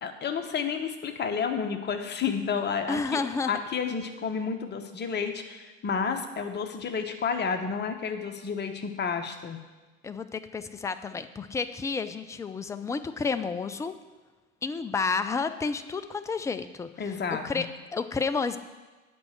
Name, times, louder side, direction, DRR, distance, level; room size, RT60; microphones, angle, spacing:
voice 1, 0.0-3.2 3.5-9.6 17.0-17.6, left 6 dB, 25° left, 6 dB, 1.2 m, -31 dB
voice 2, 2.9-3.6 10.0-14.0 14.6-17.2 17.4-18.6, left 4 dB, 10° left, 11 dB, 0.4 m, -31 dB
8.6 x 5.4 x 7.8 m, 1.3 s
figure-of-eight pair, 75°, 39 cm